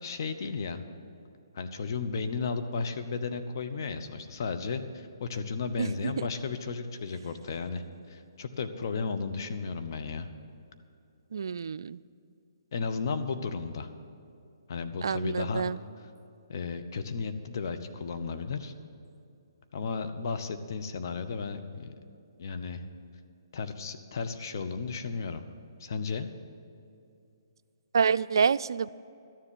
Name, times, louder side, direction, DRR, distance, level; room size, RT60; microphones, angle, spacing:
voice 1, 0.0-0.8 1.5-4.8 5.2-10.3 12.7-13.9 14.7-15.7 16.0-16.1 16.5-18.7 19.7-21.9 22.4-22.8 23.5-25.4 25.8-26.3, left 4 dB, 55° left, 8 dB, 0.9 m, -34 dB
voice 2, 5.8-6.1 11.3-12.0 15.0-15.8 27.9-28.9, right 6 dB, 70° right, 16 dB, 0.3 m, -27 dB
12.5 x 7.5 x 9.9 m, 2.6 s
hypercardioid pair, 140°, 2 cm